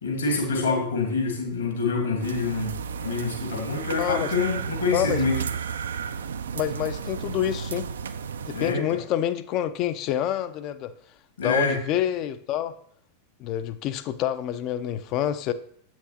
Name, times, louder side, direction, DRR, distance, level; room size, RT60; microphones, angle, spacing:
voice 1, 0.0-5.3 8.5-8.8 11.4-11.8, left 4 dB, 70° left, 1 dB, 1.7 m, -26 dB
sound 1, 2.2-8.7, right 6 dB, 65° right, 0.3 m, -32 dB
voice 2, 4.0-4.3 4.9-5.2 6.5-7.9 8.5-10.9 11.4-12.7 13.4-15.5, left 11 dB, 40° left, 12 dB, 0.4 m, -27 dB
8.0 x 5.9 x 2.7 m, 0.64 s
figure-of-eight pair, 90°, 0 cm